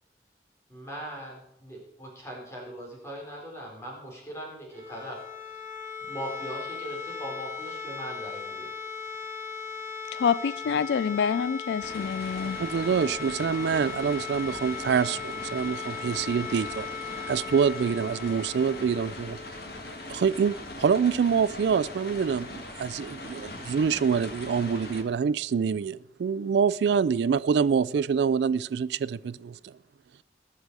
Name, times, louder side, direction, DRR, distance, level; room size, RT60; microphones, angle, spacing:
voice 1, 0.7-5.5 6.0-8.7 10.7-10.8, right 1 dB, 15° left, 4.0 m, -40 dB
sound 1, 4.6-20.4, left 6 dB, 15° right, 1.2 m, -38 dB
voice 2, 10.1-12.6, left 6 dB, 80° left, 0.3 m, -27 dB
sound 2, 11.8-25.0, left 2 dB, 60° left, 1.7 m, -41 dB
voice 3, 12.6-16.9 17.3-19.4 20.1-29.7, right 6 dB, 75° right, 0.3 m, -26 dB
20.0 x 6.8 x 4.7 m
head